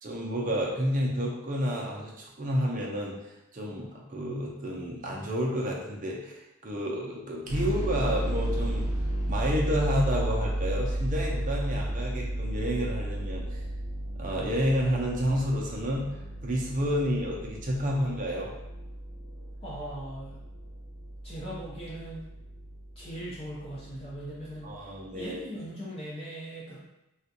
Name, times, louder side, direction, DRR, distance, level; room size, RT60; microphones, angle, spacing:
voice 1, 0.0-8.9 9.3-13.6 14.2-16.1 16.4-18.5 24.6-25.4, equal, 35° right, -2 dB, 0.5 m, -30 dB
sound 1, 7.5-25.0, right 1 dB, 75° left, 0.8 m, -34 dB
voice 2, 19.6-20.4 21.2-22.3 23.0-26.8, right 1 dB, 25° left, -7 dB, 0.5 m, -40 dB
3.4 x 2.4 x 2.7 m, 0.93 s
head